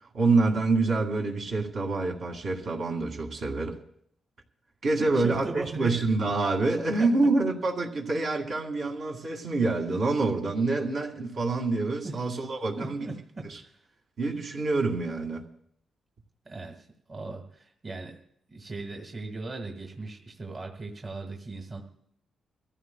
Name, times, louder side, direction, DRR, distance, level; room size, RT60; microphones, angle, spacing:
voice 1, 0.1-3.8 4.8-13.1 13.5-13.6 14.2-15.4, right 3 dB, 65° right, 1 dB, 2.2 m, -26 dB
voice 2, 5.0-6.0 7.0-7.1 12.0-12.2 12.8-13.8 16.5-18.2 18.5-21.8, right 3 dB, 35° right, 2 dB, 1.8 m, -38 dB
25.0 x 14.5 x 2.3 m, 0.68 s
cardioid pair, 115°, 0 cm